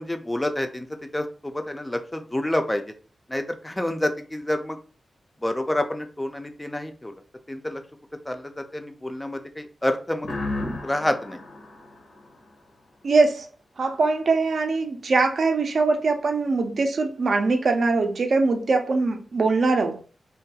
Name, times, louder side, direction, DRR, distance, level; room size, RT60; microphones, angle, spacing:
voice 1, 0.0-2.9 3.3-4.8 5.4-7.1 7.5-7.8 8.3-10.3 10.8-11.4, left 1 dB, 15° left, 0.3 m, -28 dB
sound 1, 10.2-12.9, left 2 dB, 70° left, 0.6 m, -34 dB
voice 2, 13.0-13.5 13.8-20.0, right 3 dB, 65° right, 0.4 m, -22 dB
2.3 x 2.2 x 2.7 m
wide cardioid pair, 80°, 0 cm